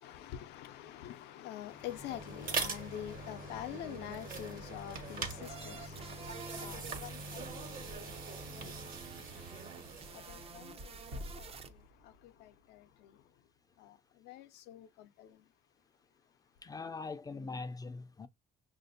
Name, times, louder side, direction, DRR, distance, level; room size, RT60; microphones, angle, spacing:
voice 1, 0.0-13.3 13.8-15.5, left 12 dB, 85° left, 0.5 m, -47 dB
sound 1, 1.7-11.5, right 4 dB, 55° right, 1.2 m, -43 dB
sound 2, 5.4-11.7, right 5 dB, 35° right, 0.5 m, -50 dB
sound 3, 11.1-13.8, equal, 85° right, 1.1 m, -50 dB
voice 2, 16.6-18.3, left 4 dB, 20° left, 0.4 m, -42 dB
6.0 x 2.5 x 2.5 m
cardioid pair, 110°, 17 cm